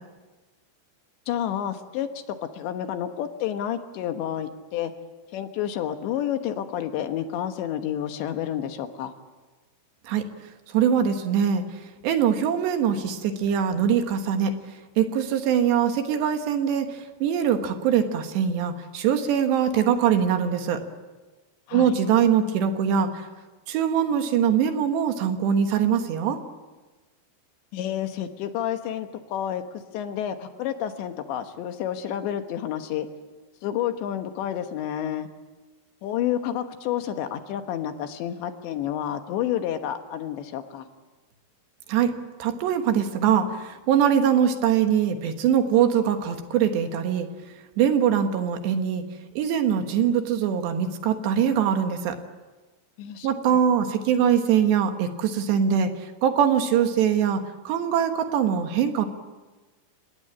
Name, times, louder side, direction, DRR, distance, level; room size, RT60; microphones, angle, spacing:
voice 1, 1.3-4.9 5.3-9.1 21.7-21.9 27.7-29.6 29.9-33.1 33.6-35.3 36.0-40.9 53.0-53.3, left 10 dB, 75° left, 7 dB, 3.4 m, -30 dB
voice 2, 10.7-14.5 15.0-20.8 21.7-23.3 23.7-26.4 41.9-42.1 42.4-47.3 47.8-49.0 49.4-52.2 53.2-59.1, right 8 dB, 70° right, 6 dB, 3.5 m, -22 dB
30.0 x 18.0 x 8.8 m, 1.2 s
omnidirectional pair, 5.5 m